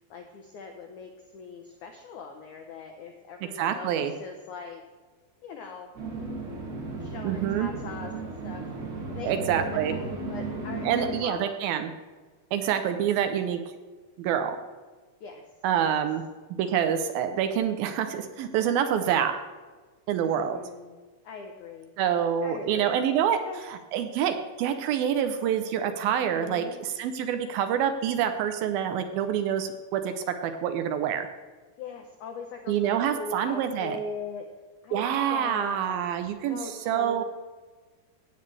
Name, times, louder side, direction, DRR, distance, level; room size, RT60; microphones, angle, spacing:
voice 1, 0.1-4.8 5.4-5.9 7.0-8.7 9.1-11.5 15.2-15.5 15.9-16.0 20.2-21.0 21.2-21.9 22.4-23.0 23.4-23.6 26.3-26.8 31.8-34.5 34.8-36.1 36.4-37.2, left 4 dB, 85° left, 4 dB, 1.7 m, -41 dB
voice 2, 3.6-4.1 7.2-7.7 9.2-9.9 10.9-11.9 12.5-13.6 14.2-14.6 15.6-16.2 16.6-19.4 20.1-20.6 22.0-23.4 23.9-31.3 32.7-34.0 34.9-37.2, right 9 dB, 80° right, 7 dB, 2.4 m, -26 dB
sound 1, 6.0-11.2, right 3 dB, 55° right, 3.1 m, -35 dB
16.0 x 8.8 x 3.3 m, 1.3 s
omnidirectional pair, 4.5 m